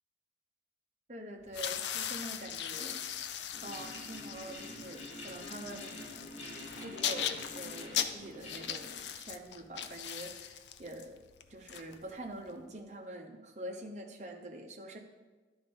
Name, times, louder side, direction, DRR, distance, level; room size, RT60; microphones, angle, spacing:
voice 1, 1.1-3.0 3.6-5.9 6.8-11.2 11.5-15.0, right 1 dB, 40° right, 2 dB, 0.9 m, -45 dB
sound 1, 1.5-12.5, left 9 dB, 80° left, 0.5 m, -39 dB
sound 2, 3.5-9.3, left 1 dB, 40° left, 1.6 m, -47 dB
11.0 x 4.4 x 5.3 m, 1.3 s
head